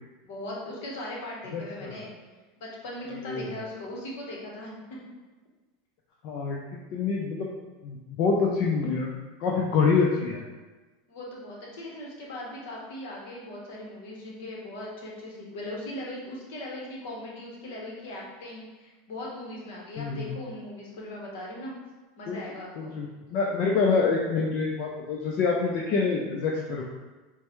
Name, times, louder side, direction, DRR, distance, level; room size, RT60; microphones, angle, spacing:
voice 1, 0.2-2.1 2.6-5.0 11.1-21.7 22.2-22.9, left 1 dB, 70° left, -3 dB, 1.0 m, -39 dB
voice 2, 1.5-2.0 3.1-3.5 6.2-6.6 6.9-7.5 7.8-9.1 9.4-10.4 20.0-20.4 22.3-22.4 22.8-26.8, left 4 dB, 55° left, -2 dB, 0.5 m, -26 dB
4.5 x 2.1 x 3.0 m, 1.2 s
hypercardioid pair, 100°, 0 cm